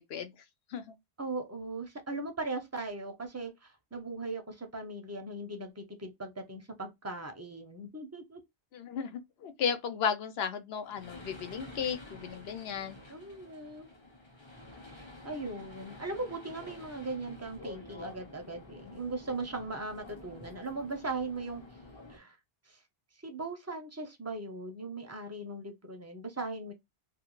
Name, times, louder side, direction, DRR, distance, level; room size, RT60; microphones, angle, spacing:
voice 1, 1.2-8.4 13.1-13.9 14.8-21.6 22.1-22.4 22.7-22.8 23.2-26.7, right 3 dB, 20° right, 0.4 m, -39 dB
voice 2, 8.7-13.0, left 7 dB, 75° left, 0.8 m, -34 dB
sound 1, 10.8-22.2, left 2 dB, 30° left, 0.7 m, -49 dB
2.4 x 2.4 x 2.9 m
omnidirectional pair, 1.1 m